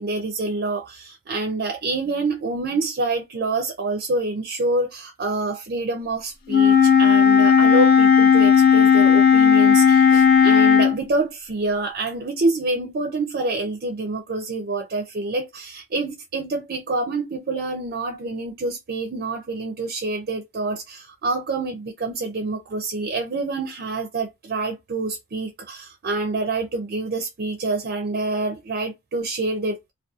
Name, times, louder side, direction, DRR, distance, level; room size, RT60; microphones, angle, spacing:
voice 1, 0.0-29.9, right 2 dB, 45° right, 0.4 m, -27 dB
Wind instrument woodwind instrument, 6.5-11.0, left 7 dB, 40° left, 0.4 m, -14 dB
2.3 x 2.2 x 2.7 m
head